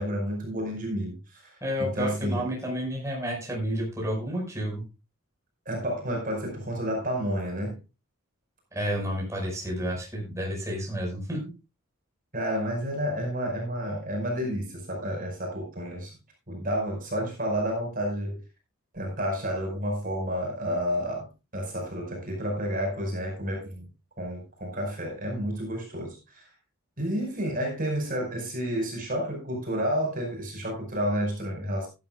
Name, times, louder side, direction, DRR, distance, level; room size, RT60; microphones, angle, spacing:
voice 1, 0.0-2.5 5.7-7.8 12.3-16.1 16.5-18.4 18.9-21.3 21.5-23.9 24.2-26.5 27.0-31.9, equal, 40° right, 5.0 m, -30 dB
voice 2, 1.6-4.8 8.7-11.4, equal, 15° right, 5.1 m, -30 dB
16.5 x 11.0 x 2.3 m
head